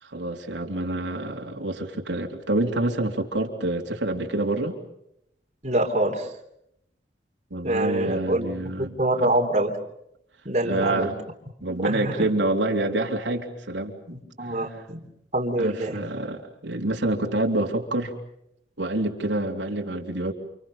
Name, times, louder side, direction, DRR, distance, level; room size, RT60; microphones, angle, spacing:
voice 1, 0.0-4.8 7.5-9.0 10.6-11.1 11.6-14.0 15.5-18.1 18.8-20.3, right 2 dB, 85° right, 1 dB, 3.5 m, -27 dB
voice 2, 5.6-6.3 7.6-9.7 10.4-11.1 11.8-12.3 14.1-15.0 15.3-16.0, right 1 dB, 40° right, 2 dB, 3.4 m, -25 dB
30.0 x 28.0 x 5.6 m, 0.78 s
head